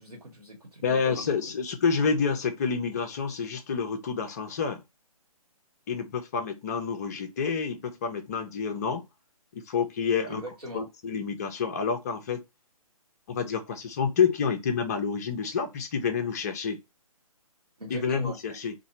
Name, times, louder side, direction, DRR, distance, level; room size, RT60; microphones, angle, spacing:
voice 1, 0.0-1.4 10.3-10.9 17.8-18.4, equal, 85° right, 1.2 m, -41 dB
voice 2, 0.8-4.8 5.9-9.0 9.5-10.4 10.7-12.4 13.3-16.8 17.9-18.7, left 6 dB, 25° left, 0.5 m, -28 dB
2.9 x 2.2 x 2.6 m
figure-of-eight pair, 140°, 19 cm